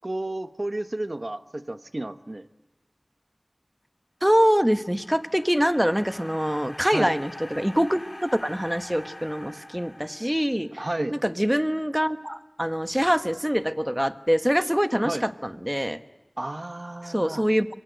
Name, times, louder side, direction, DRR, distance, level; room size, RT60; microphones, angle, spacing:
voice 1, 0.0-2.5 6.9-7.1 10.8-11.2 15.0-15.2 16.4-17.4, right 1 dB, 50° right, 10 dB, 0.9 m, -32 dB
voice 2, 4.2-10.7 11.1-16.0 17.0-17.7, equal, 10° right, 10 dB, 1.2 m, -24 dB
sound 1, 4.5-10.9, left 1 dB, 35° left, 3.1 m, -44 dB
26.5 x 23.5 x 8.0 m, 1.2 s
wide cardioid pair, 40°, 0 cm